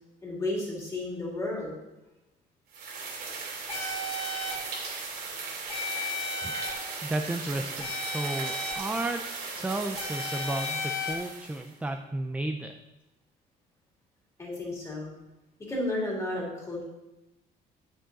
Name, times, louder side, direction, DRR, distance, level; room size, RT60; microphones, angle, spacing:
voice 1, 0.2-1.8 14.4-15.2 15.7-16.8, left 2 dB, 20° left, -4 dB, 2.9 m, -32 dB
sound 1, 2.7-11.7, right 4 dB, 70° right, 3.2 m, -38 dB
sound 2, 3.7-4.6 5.7-6.7 7.8-8.7 10.0-11.1, left 3 dB, 35° left, 2.5 m, -34 dB
voice 2, 7.0-9.2 9.6-12.7, right 2 dB, 10° right, 5 dB, 0.4 m, -33 dB
9.0 x 6.3 x 4.1 m, 0.98 s
cardioid pair, 130°, 17 cm